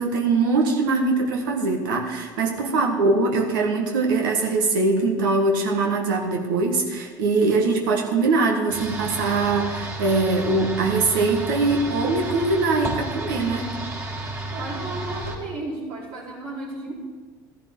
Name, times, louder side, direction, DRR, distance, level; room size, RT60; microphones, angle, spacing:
voice 1, 0.0-13.7, right 3 dB, 80° right, 2 dB, 1.4 m, -22 dB
sound 1, 8.7-15.4, right 1 dB, 25° right, 3.4 m, -32 dB
voice 2, 14.5-16.9, right 2 dB, 65° right, -4 dB, 3.9 m, -34 dB
13.0 x 11.0 x 3.7 m, 1.5 s
hypercardioid pair, 75°, 11 cm